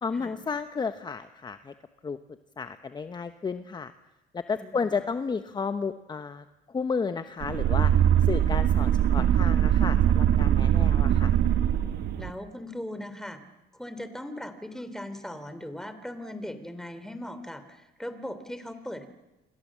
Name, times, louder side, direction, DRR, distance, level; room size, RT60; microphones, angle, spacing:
voice 1, 0.0-1.7 2.0-2.2 2.6-3.9 4.3-7.9 8.2-11.3, left 5 dB, 25° left, 10 dB, 1.0 m, -32 dB
sound 1, 7.4-12.3, right 10 dB, 70° right, 1.5 m, -22 dB
voice 2, 12.2-13.4 13.7-19.1, left 1 dB, 5° left, 10 dB, 3.1 m, -39 dB
28.0 x 25.0 x 7.5 m, 1.0 s
cardioid pair, 110°, 17 cm